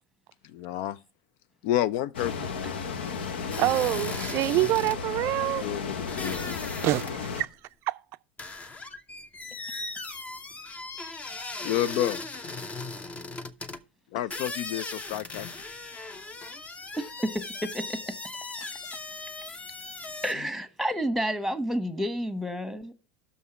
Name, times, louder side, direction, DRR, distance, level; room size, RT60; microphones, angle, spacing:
voice 1, 0.4-1.0 1.6-2.5 5.6-6.6 11.6-12.2 14.1-15.5, left 13 dB, 60° left, 0.4 m, -30 dB
sound 1, 2.1-7.4, left 5 dB, 75° left, 0.9 m, -34 dB
sound 2, 3.5-5.0 6.1-7.2 7.4-7.5 8.4-13.8 14.3-20.3, left 3 dB, 25° left, 0.9 m, -38 dB
voice 2, 3.6-5.7 6.8-7.5 7.9-8.0, right 16 dB, 50° right, 0.4 m, -26 dB
voice 3, 17.0-18.1 18.6-18.7 20.2-22.9, equal, ahead, 1.4 m, -30 dB
6.5 x 5.5 x 6.8 m
hypercardioid pair, 80°, 6 cm